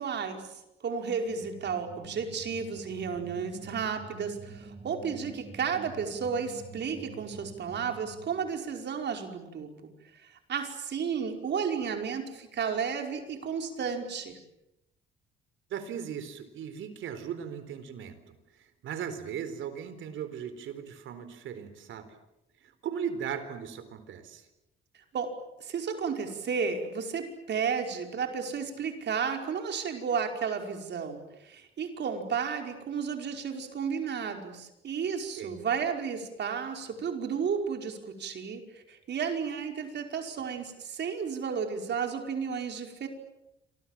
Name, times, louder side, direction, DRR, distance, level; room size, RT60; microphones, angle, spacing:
voice 1, 0.0-9.7 10.1-14.4 25.1-25.3 25.6-43.1, right 6 dB, 60° right, 4 dB, 5.2 m, -33 dB
sound 1, 1.3-8.6, right 4 dB, 30° right, 3.8 m, -47 dB
voice 2, 15.7-22.1 22.6-24.5 35.4-35.5, right 8 dB, 75° right, 11 dB, 4.2 m, -38 dB
27.5 x 26.0 x 7.5 m, 0.90 s
cardioid pair, 90°, 20 cm